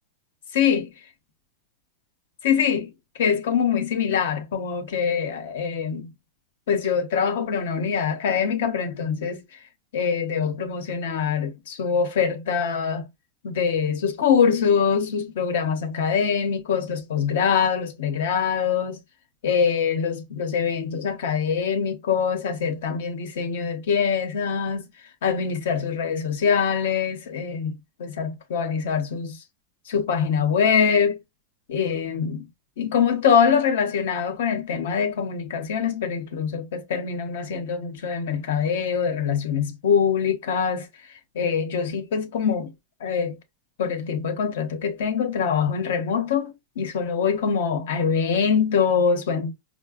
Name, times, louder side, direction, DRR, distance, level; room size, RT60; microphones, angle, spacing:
voice 1, 0.5-0.9 2.4-6.1 6.7-9.4 9.9-13.1 13.4-19.0 19.4-24.9 25.2-29.4 29.9-31.2 31.7-32.5 32.8-40.9 41.3-42.7 43.0-43.4 43.8-49.5, left 6 dB, 80° left, 0.8 m, -24 dB
4.7 x 2.1 x 2.4 m
supercardioid pair, 145°, 0 cm